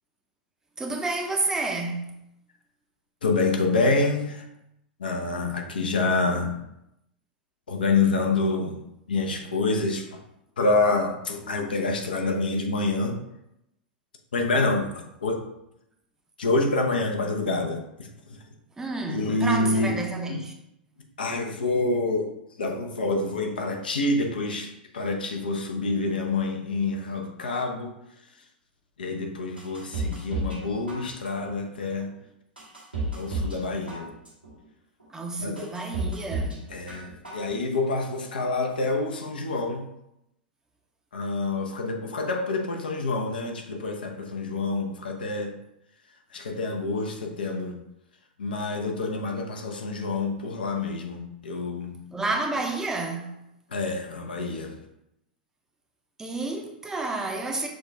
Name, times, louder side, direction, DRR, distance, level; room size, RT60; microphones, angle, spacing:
voice 1, 0.8-2.1 18.8-20.5 35.1-36.6 52.1-53.4 56.2-57.7, right 3 dB, 10° right, 0.6 m, -30 dB
voice 2, 3.2-4.4 5.0-6.6 7.7-8.8 9.1-10.2 10.6-13.2 14.3-15.4 16.4-18.1 19.1-20.0 20.3-20.5 21.2-22.3 22.6-27.9 29.0-32.1 33.1-34.1 35.4-35.7 36.7-39.9 41.1-45.5 46.3-47.8 48.4-52.0 53.7-54.8, left 3 dB, 70° left, 0.7 m, -27 dB
sound 1, 29.6-30.6 30.9-31.5 32.0-32.1 32.6-33.6 33.9-34.5 35.0-35.1 35.6-36.6 36.9-37.5 37.8-37.9, right 2 dB, 85° right, 1.4 m, -31 dB
6.3 x 2.4 x 3.4 m
figure-of-eight pair, 95°, 5 cm